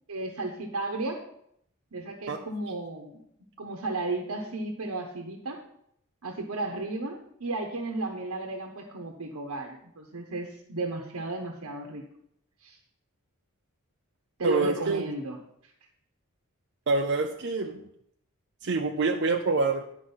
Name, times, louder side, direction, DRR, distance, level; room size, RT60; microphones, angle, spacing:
voice 1, 0.1-1.2 1.9-3.2 3.6-5.6 6.2-12.0 12.6-12.8 14.4-15.4, right 2 dB, 85° right, 1 dB, 1.1 m, -34 dB
voice 2, 14.4-15.1 16.9-17.8 18.6-20.0, right 3 dB, 55° right, 4 dB, 0.6 m, -26 dB
10.5 x 4.9 x 5.5 m, 0.72 s
head